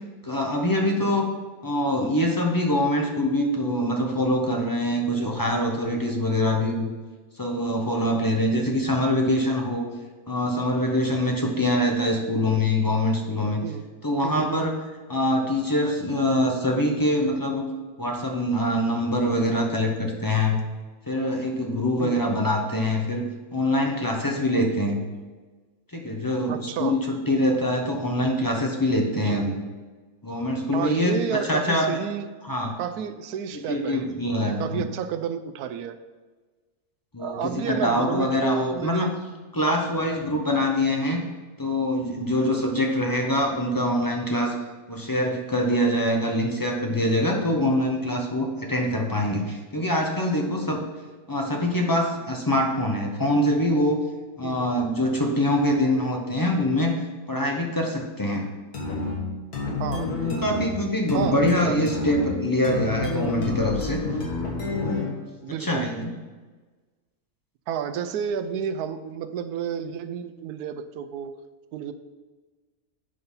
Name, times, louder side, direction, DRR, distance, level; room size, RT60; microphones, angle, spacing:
voice 1, 0.2-1.3 1.6-6.9 7.4-9.9 10.3-13.6 14.0-14.7 15.1-17.7 18.0-20.6 21.1-23.2 23.5-25.0 25.9-29.5 30.2-31.9 32.5-32.8 33.5-34.8 37.1-39.1 39.5-41.2 41.6-44.5 44.9-50.8 51.3-54.0 54.4-57.0 57.3-58.5 60.2-64.0 64.6-65.1 65.6-66.1, left 1 dB, 20° left, 1 dB, 0.6 m, -24 dB
voice 2, 14.2-14.7 22.0-22.2 24.5-24.7 26.5-27.0 29.1-29.4 30.7-32.3 32.8-34.1 34.4-36.0 37.2-39.2 46.2-46.3 54.4-54.9 59.8-60.1 61.1-61.4 61.6-61.8 65.4-65.9 67.7-71.4 71.7-71.9, right 7 dB, 85° right, 10 dB, 1.1 m, -31 dB
sound 1, 58.7-65.2, left 3 dB, 85° left, 2.0 m, -29 dB
9.3 x 3.9 x 5.5 m, 1.3 s
omnidirectional pair, 1.6 m